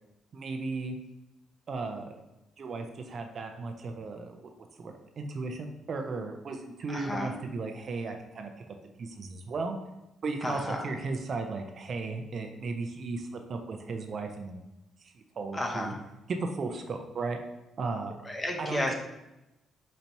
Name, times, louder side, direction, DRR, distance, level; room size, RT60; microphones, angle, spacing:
voice 1, 0.3-1.0 1.7-2.2 2.6-4.4 4.8-8.5 9.0-9.8 10.2-14.6 15.4-15.9 16.3-17.4 17.8-18.1 18.6-18.9, right 3 dB, 40° right, 5 dB, 0.4 m, -35 dB
voice 2, 6.9-7.3 10.4-10.9 15.5-16.0 18.3-18.9, left 1 dB, 15° left, 1 dB, 0.6 m, -32 dB
4.0 x 2.7 x 4.5 m, 0.94 s
cardioid pair, 150°, 0 cm